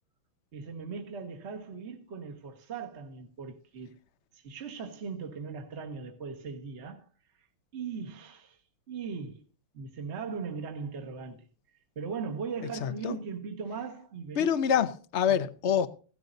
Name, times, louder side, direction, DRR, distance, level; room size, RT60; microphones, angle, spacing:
voice 1, 0.5-4.0 4.3-7.1 7.7-8.6 8.9-9.4 9.7-11.5 11.9-14.6 15.3-15.4, right 5 dB, 35° right, 1.6 m, -39 dB
voice 2, 12.8-13.2 14.4-15.9, left 8 dB, 65° left, 0.6 m, -26 dB
16.5 x 13.0 x 2.7 m
omnidirectional pair, 2.4 m